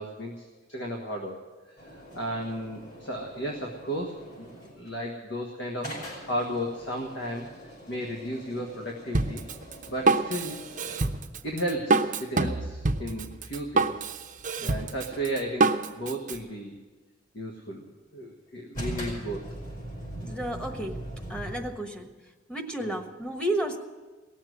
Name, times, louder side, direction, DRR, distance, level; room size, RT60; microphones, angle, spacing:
voice 1, 0.0-1.4 1.7-4.5 4.7-9.5 9.9-10.7 11.4-14.1 14.6-16.8 17.3-17.9 18.1-19.5 22.8-22.9, equal, 65° left, 1 dB, 1.6 m, -34 dB
sound 1, 1.8-4.9 5.8-11.1 18.7-21.6, right 1 dB, 45° left, 4.8 m, -41 dB
Drum kit, 9.1-16.4, right 3 dB, 45° right, 0.8 m, -26 dB
voice 2, 20.2-21.0 21.3-22.1 22.5-23.8, right 1 dB, 5° left, 4 dB, 1.2 m, -32 dB
17.5 x 7.3 x 9.9 m, 1.3 s
head